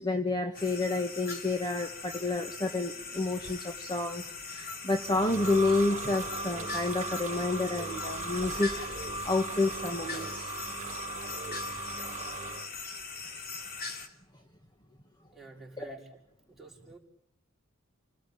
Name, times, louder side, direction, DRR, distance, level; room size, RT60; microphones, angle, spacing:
voice 1, 0.0-10.6 15.8-16.0, left 2 dB, 20° left, 5 dB, 1.7 m, -30 dB
sound 1, 0.5-14.1, left 4 dB, 45° left, 3.7 m, -41 dB
sound 2, 4.7-12.7, right 3 dB, 35° right, 1.8 m, -38 dB
voice 2, 15.3-16.2 16.5-17.0, right 3 dB, ahead, -2 dB, 5.7 m, -50 dB
29.5 x 19.5 x 8.8 m, 0.76 s
head